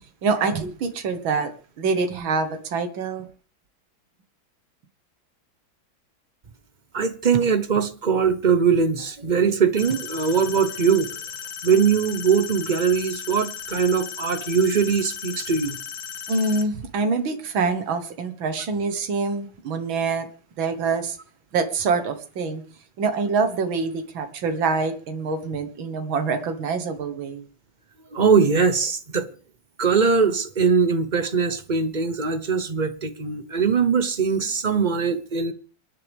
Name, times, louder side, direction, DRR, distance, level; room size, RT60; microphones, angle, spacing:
voice 1, 0.2-1.5 1.8-3.3 16.3-20.3 20.6-21.2 21.5-22.6 23.0-27.4, right 4 dB, 80° right, 2.2 m, -25 dB
voice 2, 6.9-11.1 11.6-15.8 28.1-29.2 29.8-35.5, right 6 dB, 35° right, 0.8 m, -21 dB
sound 1, 9.8-16.6, left 8 dB, 60° left, 1.7 m, -36 dB
27.0 x 10.5 x 3.5 m
omnidirectional pair, 2.1 m